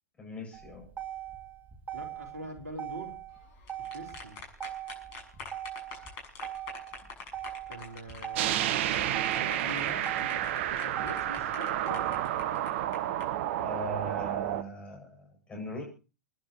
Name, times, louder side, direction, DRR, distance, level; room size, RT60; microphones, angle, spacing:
voice 1, 0.2-0.9 13.6-15.8, left 1 dB, 15° left, 0 dB, 8.0 m, -40 dB
Motor vehicle (road), 0.5-12.5, right 11 dB, 20° right, 2.7 m, -41 dB
voice 2, 1.9-3.2 3.8-4.4 7.7-12.2, right 1 dB, 75° right, 3 dB, 3.9 m, -44 dB
sound 1, 3.5-13.2, left 4 dB, 40° left, 7.0 m, -44 dB
sound 2, 8.3-14.6, right 12 dB, 45° right, 0.9 m, -30 dB
29.0 x 10.5 x 3.1 m, 0.35 s
figure-of-eight pair, 100°, 9 cm